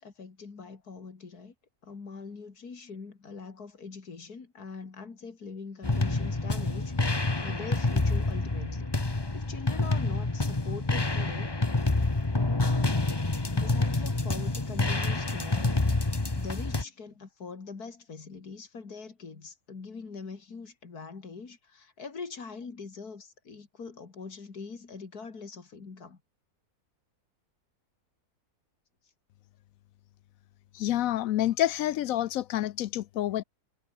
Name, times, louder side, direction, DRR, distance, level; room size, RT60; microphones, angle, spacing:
voice 1, 0.0-1.5 1.8-11.5 13.5-15.9 16.3-26.2, left 4 dB, 85° left, 3.2 m, -43 dB
sound 1, 5.8-16.8, left 2 dB, 15° left, 1.3 m, -27 dB
voice 2, 30.7-33.4, left 13 dB, 70° left, 0.9 m, -28 dB
omnidirectional pair, 1.6 m